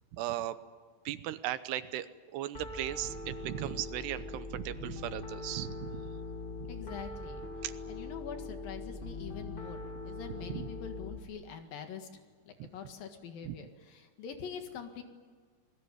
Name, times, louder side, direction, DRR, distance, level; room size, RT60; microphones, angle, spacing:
voice 1, 0.1-0.6 1.1-6.1 7.6-7.7 10.5-10.7 13.4-13.6, right 13 dB, 80° right, 13 dB, 2.9 m, -37 dB
Piano, 2.5-11.2, left 2 dB, 25° left, 1.1 m, -42 dB
voice 2, 6.7-7.5 7.9-15.0, left 7 dB, 60° left, 5 dB, 3.3 m, -45 dB
28.5 x 20.0 x 9.5 m, 1.5 s
omnidirectional pair, 4.8 m